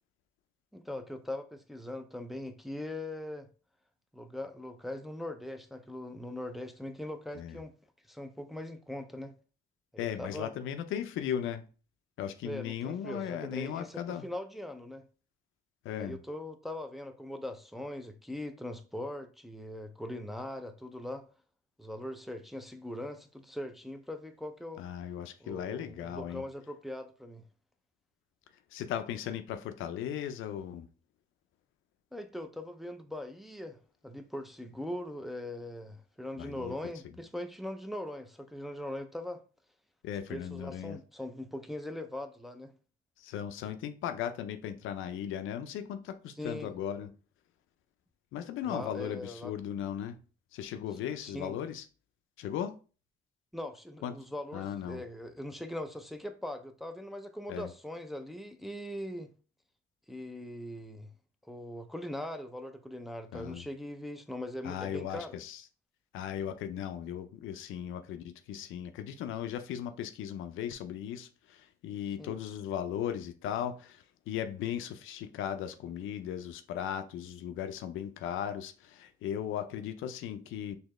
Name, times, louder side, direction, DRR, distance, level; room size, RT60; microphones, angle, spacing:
voice 1, 0.7-3.5 4.1-7.7 8.1-9.3 9.9-10.5 12.4-15.0 16.0-21.3 21.8-24.8 25.4-27.4 32.1-33.8 34.0-39.4 40.3-42.7 46.4-46.7 48.6-49.5 51.0-51.5 53.5-59.3 60.1-61.1 61.5-65.4 72.2-72.4, left 1 dB, ahead, 0.4 m, -41 dB
voice 2, 10.0-11.6 12.2-14.2 15.8-16.2 24.8-26.4 28.7-30.9 36.3-36.7 40.0-41.0 43.2-47.1 48.3-50.2 50.5-51.8 52.4-52.8 54.0-54.2 54.5-55.0 57.5-57.7 63.3-63.6 64.6-65.6 66.1-80.8, left 9 dB, 85° left, 0.5 m, -37 dB
4.1 x 2.8 x 3.1 m
cardioid pair, 90°, 20 cm